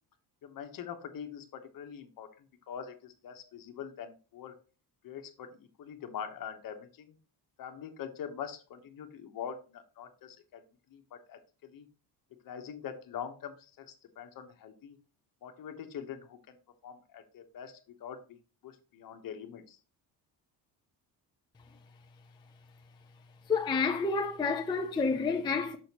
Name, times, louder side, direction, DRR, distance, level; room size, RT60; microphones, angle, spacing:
voice 1, 0.4-2.3 2.7-4.6 5.0-7.1 7.6-10.6 10.9-11.9 12.4-15.0 15.4-16.4 16.8-19.8, left 8 dB, 55° left, 1.1 m, -44 dB
voice 2, 23.5-25.8, left 4 dB, 10° left, 0.4 m, -29 dB
6.3 x 6.2 x 2.9 m
cardioid pair, 175°, 41 cm